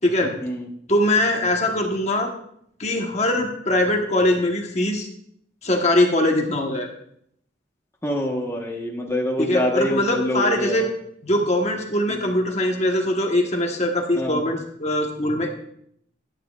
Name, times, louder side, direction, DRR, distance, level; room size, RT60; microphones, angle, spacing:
voice 1, 0.0-0.3 0.9-2.3 2.8-5.1 5.6-6.9 9.4-10.9 11.2-15.5, left 1 dB, 35° left, 2 dB, 1.2 m, -22 dB
voice 2, 8.0-10.9 12.1-12.3 14.1-14.5, left 1 dB, 15° left, -2 dB, 1.2 m, -25 dB
13.0 x 11.0 x 2.4 m, 0.70 s
head